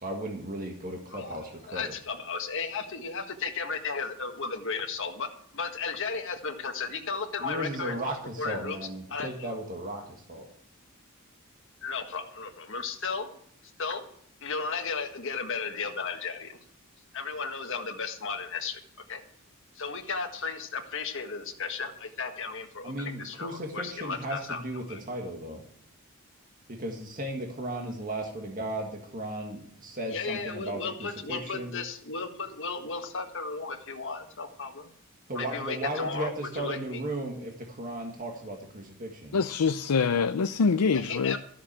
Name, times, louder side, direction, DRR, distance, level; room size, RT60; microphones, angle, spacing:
voice 1, 0.0-1.9 7.4-10.5 22.8-25.6 26.7-31.8 35.3-39.4, right 1 dB, 40° right, 1 dB, 1.7 m, -36 dB
voice 2, 1.7-8.0 8.4-9.3 11.8-13.3 13.8-14.0 14.4-16.6 17.1-18.8 19.1-19.2 19.7-24.6 24.9-25.0 30.1-34.9 35.3-37.0 40.9-41.4, left 5 dB, 60° left, 4 dB, 1.7 m, -34 dB
voice 3, 39.3-41.4, left 5 dB, 85° left, 10 dB, 0.5 m, -25 dB
13.5 x 7.0 x 7.5 m, 0.66 s
head